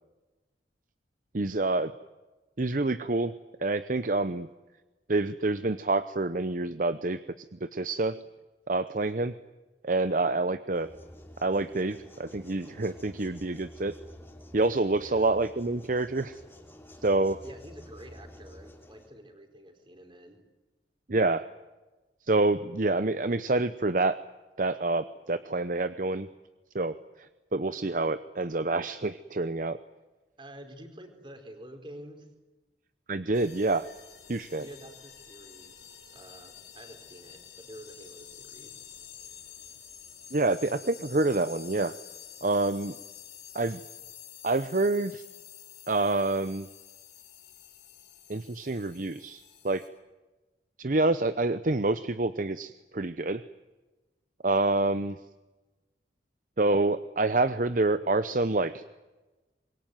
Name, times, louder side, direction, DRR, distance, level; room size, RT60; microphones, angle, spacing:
voice 1, 1.3-1.9 2.6-3.3 3.6-4.5 5.1-7.2 7.5-8.2 8.7-9.3 9.8-10.9 11.4-14.0 14.5-16.4 17.0-17.4 21.1-21.5 22.3-24.2 24.6-26.3 26.7-29.8 33.1-33.9 34.3-34.6 40.3-42.0 42.4-43.0 43.5-43.8 44.4-45.2 45.9-46.7 48.3-49.8 50.8-53.4 54.4-55.2 56.6-58.8, right 2 dB, 45° right, 12 dB, 0.8 m, -27 dB
voice 2, 10.2-10.5 14.9-15.4 17.4-20.4 30.4-32.3 34.6-38.9, right 1 dB, 25° right, 6 dB, 4.2 m, -49 dB
sound 1, 10.7-19.1, equal, 15° left, 3.1 m, -50 dB
sound 2, 33.3-49.9, left 9 dB, 70° left, 6.6 m, -49 dB
25.5 x 22.5 x 9.3 m, 1.1 s
head